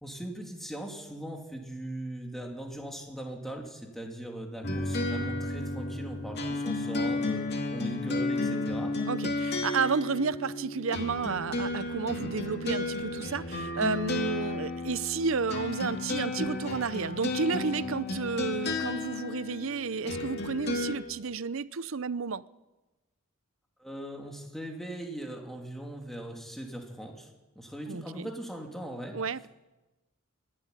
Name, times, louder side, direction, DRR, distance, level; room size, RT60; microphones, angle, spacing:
voice 1, 0.0-7.4 7.7-9.0 12.2-12.4 23.8-29.2, right 1 dB, ahead, 3.0 m, -39 dB
sound 1, 4.6-21.0, left 2 dB, 50° left, 2.7 m, -33 dB
voice 2, 9.1-22.4 27.9-28.3 29.1-29.5, right 5 dB, 70° right, 0.7 m, -31 dB
25.0 x 12.0 x 9.9 m
head